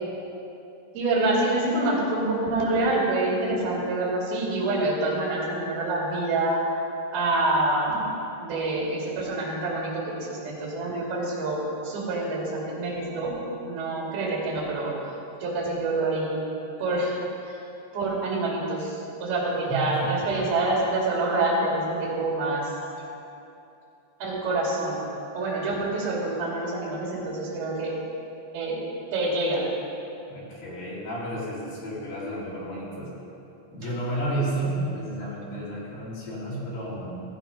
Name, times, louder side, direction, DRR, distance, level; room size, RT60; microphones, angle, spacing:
voice 1, 0.9-6.6 7.1-8.1 8.4-13.3 13.6-15.1 15.4-16.4 16.8-17.2 17.4-17.6 17.9-22.7 24.2-25.0 25.3-27.9 28.5-28.8 29.1-29.6, right 2 dB, 55° right, -4 dB, 4.1 m, -26 dB
voice 2, 19.7-20.3 30.3-33.1 33.7-37.1, right 1 dB, 50° left, -7 dB, 4.1 m, -31 dB
16.0 x 8.9 x 5.4 m, 2.8 s
omnidirectional pair, 5.6 m